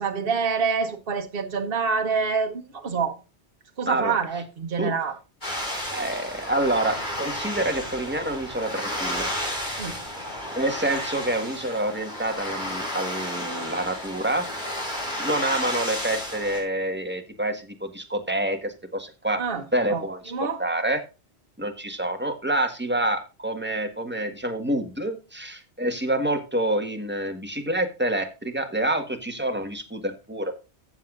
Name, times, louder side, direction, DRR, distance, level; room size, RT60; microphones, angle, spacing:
voice 1, 0.0-3.2 3.8-5.2 9.8-10.0 19.4-19.6 19.9-20.0 20.3-20.6, right 5 dB, 55° right, 1.3 m, -26 dB
voice 2, 3.8-4.2 4.8-4.9 5.9-9.3 10.5-14.5 15.2-19.4 19.7-21.0 21.6-30.5, right 1 dB, 10° right, 1.6 m, -27 dB
sound 1, 5.4-16.6, left 1 dB, 45° left, 5.2 m, -32 dB
14.0 x 7.6 x 2.5 m
omnidirectional pair, 1.1 m